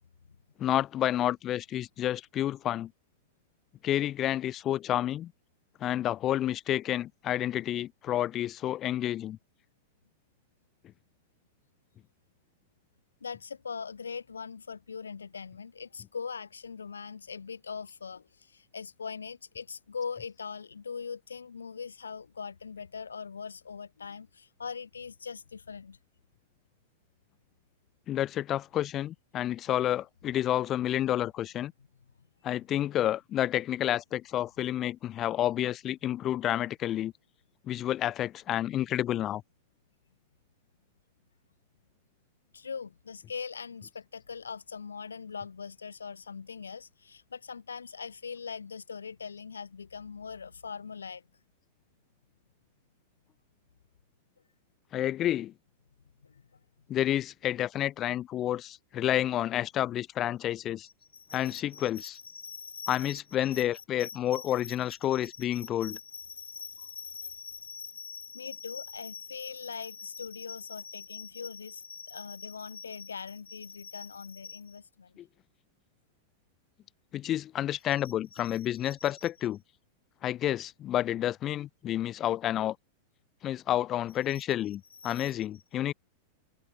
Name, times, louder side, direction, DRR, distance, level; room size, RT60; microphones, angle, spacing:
voice 1, 0.6-2.9 3.8-5.3 5.8-9.4 28.1-31.7 32.4-37.1 37.6-39.4 54.9-55.5 56.9-60.9 61.3-62.2 62.9-66.0 75.2-75.3 77.1-79.6 80.2-82.8 83.4-85.9, left 12 dB, 30° left, 0.3 m, -30 dB
voice 2, 13.2-26.0 42.5-51.2 56.2-56.4 60.8-63.6 64.0-75.1 78.3-79.1 85.0-85.3, left 5 dB, 75° left, 1.6 m, -41 dB
figure-of-eight pair, 90°, 0 cm